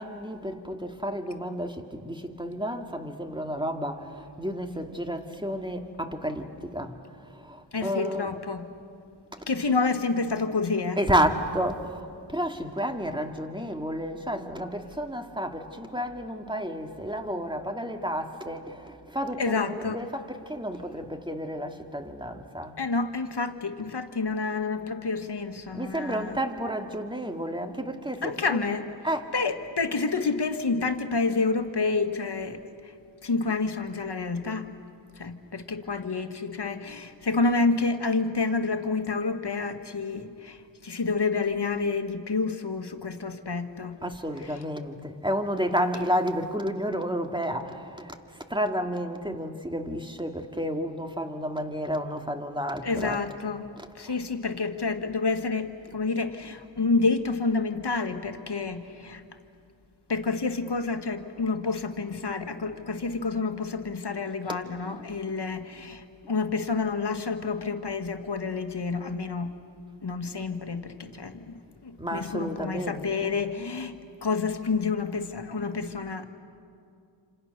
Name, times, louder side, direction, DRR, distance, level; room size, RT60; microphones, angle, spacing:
voice 1, 0.0-8.4 9.7-9.8 11.0-22.8 25.7-28.7 29.0-29.4 44.0-53.2 53.8-54.2 55.9-56.0 64.8-65.1 72.0-73.3, equal, 10° right, 5 dB, 2.1 m, -31 dB
voice 2, 7.7-8.6 9.5-11.0 19.4-20.0 22.8-26.4 28.2-28.9 29.3-32.9 33.2-34.7 35.2-44.0 44.4-44.6 52.8-53.7 53.9-59.2 60.1-69.5 70.0-73.9 74.2-76.2, left 4 dB, 60° left, 8 dB, 1.7 m, -29 dB
28.0 x 26.5 x 6.7 m, 2.4 s
cardioid pair, 45°, 46 cm